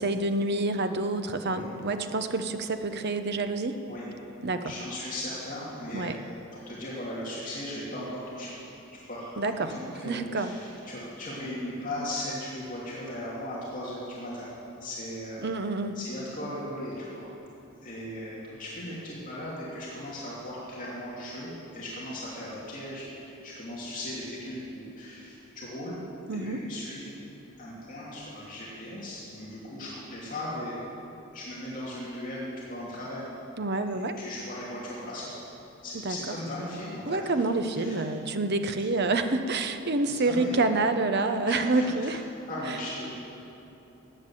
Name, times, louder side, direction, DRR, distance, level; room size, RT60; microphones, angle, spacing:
voice 1, 0.0-3.8 4.4-4.7 5.9-6.2 9.4-9.7 10.0-10.5 15.4-16.0 26.3-26.6 33.6-34.2 36.0-36.3 37.1-42.2 42.7-42.8, right 2 dB, 50° right, 8 dB, 0.9 m, -28 dB
voice 2, 4.6-6.1 6.7-8.5 9.1-14.5 14.8-15.7 15.9-17.2 17.8-26.0 26.3-27.2 27.6-30.8 31.3-33.3 33.9-35.3 35.8-37.2 37.7-38.0 40.1-40.6 41.4-42.1 42.5-43.1, left 1 dB, 40° left, -7 dB, 2.9 m, -37 dB
18.5 x 9.4 x 7.8 m, 3.0 s
head